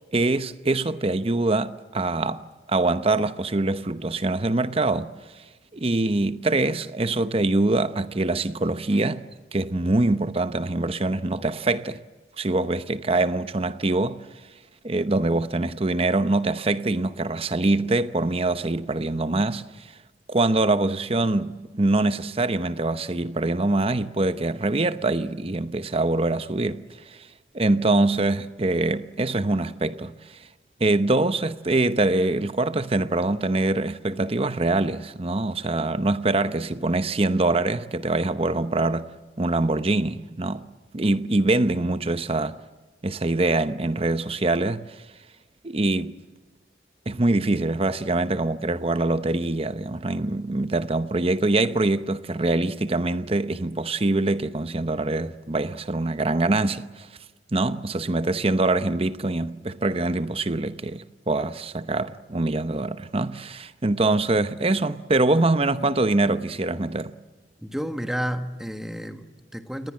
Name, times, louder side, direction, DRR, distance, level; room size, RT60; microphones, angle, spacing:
voice 1, 0.1-5.1 5.7-9.2 9.5-12.0 12.4-14.2 14.8-19.9 20.3-27.2 27.5-30.1 30.8-39.1 39.4-40.7 40.9-42.6 43.0-44.8 45.6-46.1 47.1-57.1 57.5-67.1, right 2 dB, 30° right, 0.8 m, -24 dB
voice 2, 67.6-69.9, equal, ahead, 1.4 m, -31 dB
29.0 x 20.0 x 7.5 m
head